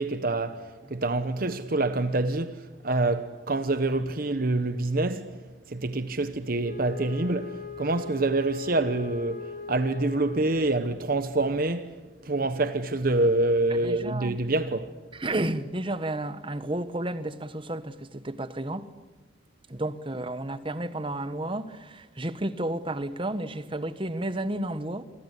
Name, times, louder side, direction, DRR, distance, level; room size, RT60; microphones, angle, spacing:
voice 1, 0.0-5.4 5.7-12.0 12.2-14.9, right 2 dB, 50° right, 1.1 m, -26 dB
Wind instrument woodwind instrument, 6.6-11.2, left 4 dB, 50° left, 2.8 m, -40 dB
voice 2, 13.7-14.4 15.1-18.9 19.7-25.0, right 1 dB, 30° right, 1.3 m, -32 dB
29.0 x 23.0 x 8.4 m
head